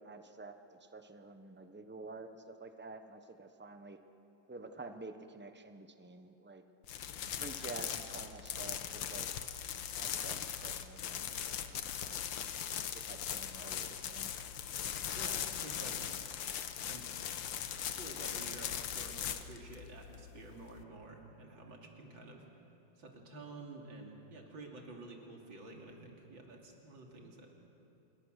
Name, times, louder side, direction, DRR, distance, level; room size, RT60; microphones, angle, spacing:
voice 1, 0.0-0.6 0.9-4.0 4.5-6.6 7.3-9.3 10.0-12.2 12.7-14.3, right 3 dB, 10° right, 7 dB, 0.5 m, -49 dB
sound 1, 6.8-20.8, left 9 dB, 80° left, 1.7 m, -40 dB
voice 2, 15.1-16.0 16.9-17.1 18.0-22.5 23.0-27.5, right 2 dB, 85° right, 0 dB, 3.6 m, -50 dB
27.0 x 21.5 x 6.6 m, 2.9 s
omnidirectional pair, 2.1 m